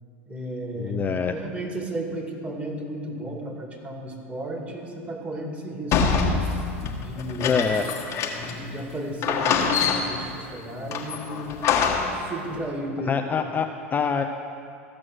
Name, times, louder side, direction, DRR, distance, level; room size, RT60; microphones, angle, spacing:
voice 1, 0.3-6.3 7.0-7.6 8.4-11.5 12.1-13.2, right 1 dB, 20° right, 2 dB, 2.2 m, -33 dB
voice 2, 0.8-1.3 7.4-7.9 13.1-14.2, left 6 dB, 25° left, 5 dB, 0.5 m, -25 dB
sound 1, 5.9-8.7 8.9-9.0 9.2-10.3 10.9-12.3, left 5 dB, 45° left, 1.3 m, -25 dB
14.5 x 6.2 x 6.1 m, 2.4 s
hypercardioid pair, 90°, 7 cm